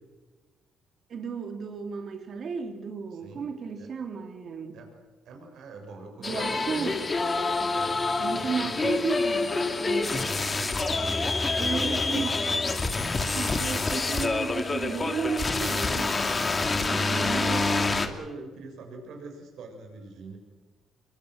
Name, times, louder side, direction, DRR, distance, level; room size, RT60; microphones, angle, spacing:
voice 1, 1.1-4.9 6.2-7.0 8.2-10.3 11.6-12.4 13.3-16.2 16.8-17.7, right 6 dB, 55° right, 2.8 m, -34 dB
voice 2, 3.1-3.5 3.8-3.9 4.7-4.9 5.2-7.0 7.7-8.0 8.3-9.0 10.1-12.4 16.8-20.4, right 3 dB, 75° right, 6.6 m, -43 dB
sound 1, 6.2-18.1, left 3 dB, 30° left, 2.8 m, -27 dB
26.0 x 23.5 x 6.5 m
cardioid pair, 90°, 0 cm